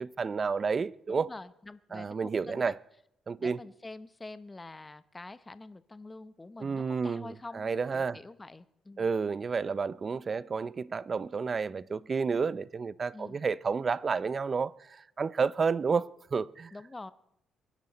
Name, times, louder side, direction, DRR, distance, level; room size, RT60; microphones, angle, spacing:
voice 1, 0.0-1.3 1.9-2.7 3.3-3.6 6.6-8.2 9.0-16.7, right 5 dB, 40° right, 0.5 m, -31 dB
voice 2, 1.1-2.8 3.4-7.7 7.9-9.1 13.1-13.4 16.7-17.1, left 2 dB, 20° left, 0.7 m, -46 dB
23.5 x 10.5 x 4.1 m
cardioid pair, 90°, 0 cm